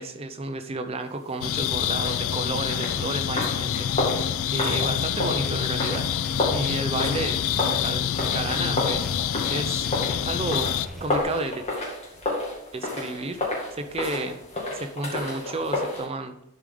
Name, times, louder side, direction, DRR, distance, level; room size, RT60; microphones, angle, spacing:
voice 1, 0.0-4.2 4.5-6.0 6.5-9.9 10.2-11.6 12.7-13.4 13.7-14.4 14.7-16.4, right 2 dB, 25° right, 7 dB, 0.5 m, -32 dB
sound 1, 1.4-10.9, left 10 dB, 60° left, 0.3 m, -27 dB
sound 2, 2.0-16.0, left 2 dB, 30° left, 2.2 m, -31 dB
sound 3, 4.6-11.2, equal, ahead, 0.9 m, -42 dB
11.0 x 4.8 x 3.8 m, 0.81 s
head